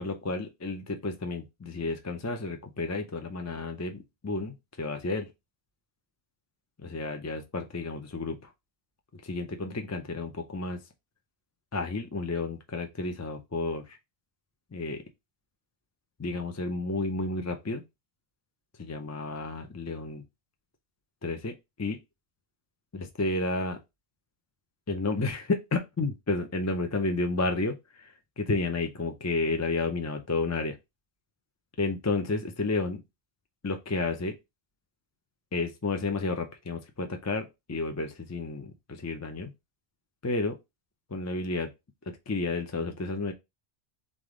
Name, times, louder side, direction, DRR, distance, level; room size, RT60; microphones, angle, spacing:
voice 1, 0.0-5.3 6.8-8.4 9.2-10.8 11.7-13.8 14.7-15.0 16.2-17.8 18.8-20.2 21.2-22.0 22.9-23.8 24.9-30.8 31.8-33.0 33.6-34.3 35.5-39.5 40.2-40.6 41.1-41.7 42.3-43.3, left 3 dB, 25° left, 0.3 m, -31 dB
3.8 x 3.4 x 3.7 m
omnidirectional pair, 1.0 m